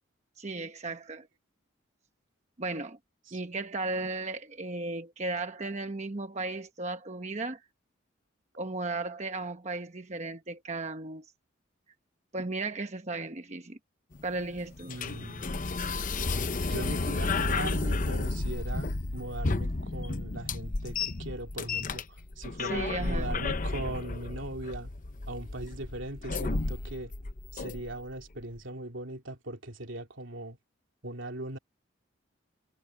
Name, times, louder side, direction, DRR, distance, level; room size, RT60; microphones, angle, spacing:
voice 1, 0.4-1.3 2.6-3.0 3.3-7.6 8.6-11.3 12.3-13.8 14.2-14.9 22.6-23.3, right 3 dB, 35° right, 1.0 m, -35 dB
sound 1, 14.1-28.1, left 3 dB, 40° left, 0.8 m, -32 dB
voice 2, 14.9-15.4 16.6-24.9 25.3-27.1 27.5-30.6 31.0-31.6, right 1 dB, 75° right, 2.8 m, -39 dB
head